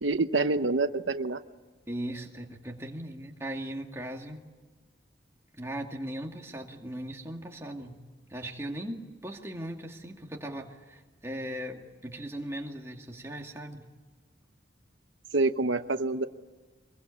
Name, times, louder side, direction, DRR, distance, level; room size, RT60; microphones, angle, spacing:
voice 1, 0.0-1.4 15.3-16.3, right 3 dB, 90° right, 10 dB, 0.9 m, -26 dB
voice 2, 1.9-4.4 5.6-8.0 8.3-13.9, right 1 dB, 15° right, 1 dB, 2.3 m, -38 dB
24.5 x 22.0 x 8.6 m, 1.3 s
head